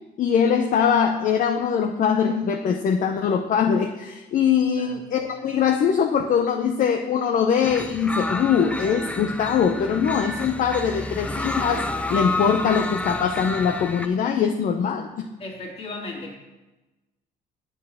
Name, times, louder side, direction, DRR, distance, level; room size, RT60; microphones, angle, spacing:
voice 1, 0.2-15.3, left 7 dB, 50° left, 5 dB, 0.7 m, -22 dB
voice 2, 4.8-5.2 15.4-16.3, left 2 dB, 35° left, -1 dB, 2.4 m, -36 dB
sound 1, 7.6-14.1, left 2 dB, 5° left, 0.5 m, -30 dB
8.5 x 4.7 x 7.4 m, 1.1 s
cardioid pair, 110°, 17 cm